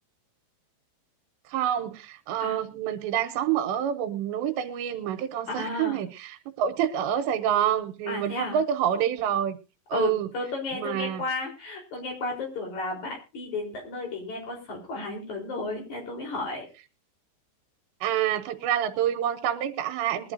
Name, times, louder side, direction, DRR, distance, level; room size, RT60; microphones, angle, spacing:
voice 1, 1.5-9.6 9.9-10.3 10.7-11.2 18.0-20.3, right 10 dB, 90° right, 7 dB, 3.2 m, -27 dB
voice 2, 5.5-6.0 8.1-8.6 9.9-16.7, left 3 dB, 45° left, 1 dB, 5.3 m, -33 dB
21.5 x 11.5 x 2.7 m, 0.30 s
omnidirectional pair, 5.0 m